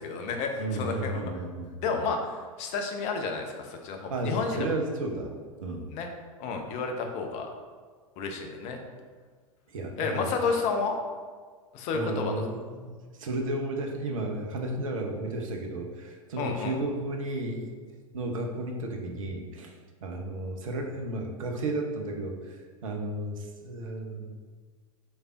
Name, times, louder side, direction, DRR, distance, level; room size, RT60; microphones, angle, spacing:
voice 1, 0.0-1.3 1.8-4.7 5.9-6.1 6.4-7.5 8.2-8.8 10.0-11.0 11.7-12.4 16.4-16.7, left 4 dB, 40° left, 3 dB, 0.6 m, -31 dB
voice 2, 0.6-2.0 4.1-5.3 5.6-5.9 9.7-10.3 11.9-17.7 18.1-19.7 20.0-22.5 22.8-24.3, right 2 dB, 65° right, 2 dB, 0.6 m, -33 dB
4.2 x 3.3 x 2.4 m, 1.5 s
figure-of-eight pair, 90°, 18 cm